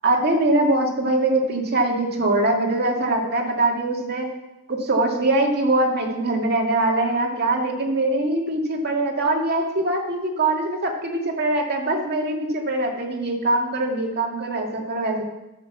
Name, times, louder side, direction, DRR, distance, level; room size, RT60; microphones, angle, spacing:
voice 1, 0.0-4.3 4.7-15.2, right 2 dB, 50° right, 0 dB, 2.2 m, -22 dB
12.0 x 6.8 x 7.2 m, 0.98 s
head